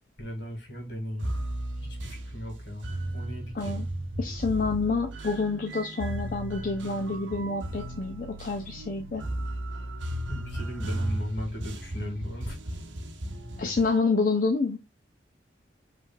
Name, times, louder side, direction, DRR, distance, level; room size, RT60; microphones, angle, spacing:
voice 1, 0.2-1.3 1.8-3.8 10.3-12.6, equal, 65° left, 2.0 m, -37 dB
sound 1, 1.2-14.0, right 1 dB, 85° right, 0.8 m, -35 dB
voice 2, 3.6-3.9 4.2-9.2 13.6-14.8, left 3 dB, 45° left, 0.5 m, -28 dB
5.1 x 3.3 x 2.3 m
head